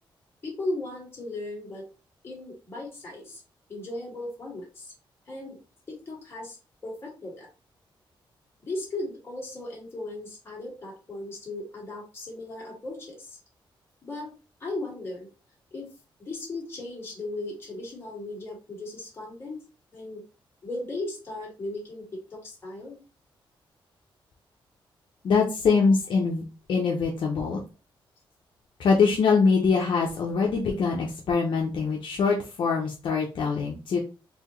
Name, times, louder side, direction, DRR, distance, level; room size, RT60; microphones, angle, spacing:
voice 1, 0.4-1.9 2.2-3.4 3.7-4.9 5.3-5.6 5.9-6.6 6.8-7.5 8.6-13.4 14.0-14.3 14.6-15.3 15.7-15.9 16.2-19.6 19.9-20.2 20.6-23.0, left 2 dB, 25° left, -4 dB, 2.0 m, -36 dB
voice 2, 25.2-26.4 26.7-27.6 28.8-34.0, left 5 dB, 65° left, -1 dB, 0.8 m, -23 dB
4.4 x 2.8 x 3.1 m, 0.32 s
wide cardioid pair, 170°, 9 cm